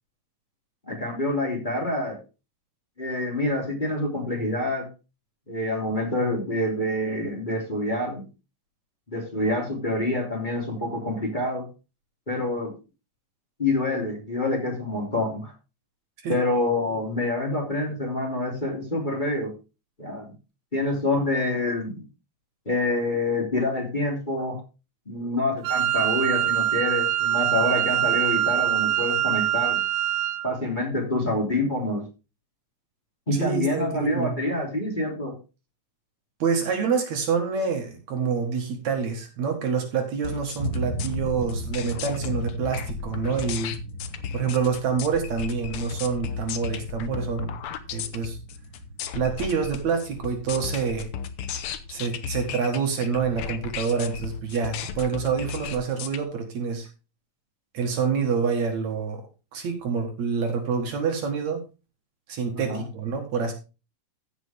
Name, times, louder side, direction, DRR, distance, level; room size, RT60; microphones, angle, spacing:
voice 1, 0.9-2.2 3.0-4.9 5.5-8.2 9.1-11.6 12.3-12.7 13.6-15.5 16.3-19.5 20.0-20.3 20.7-22.0 22.6-24.6 25.1-29.8 30.4-32.0 33.3-35.3 62.5-62.8, left 2 dB, 15° left, -2 dB, 2.9 m, -27 dB
Wind instrument woodwind instrument, 25.6-30.5, right 12 dB, 90° right, 2.4 m, -24 dB
voice 2, 33.3-34.4 36.4-43.8 44.3-47.6 47.9-48.4 49.1-51.1 51.9-56.9 57.7-59.2 59.5-61.6 62.3-63.5, right 6 dB, 65° right, 4 dB, 2.8 m, -27 dB
sound 1, 40.2-56.2, left 7 dB, 70° left, 1.3 m, -35 dB
sound 2, 40.6-52.2, equal, 35° right, 1.7 m, -37 dB
15.0 x 6.2 x 3.5 m, 0.30 s
omnidirectional pair, 3.7 m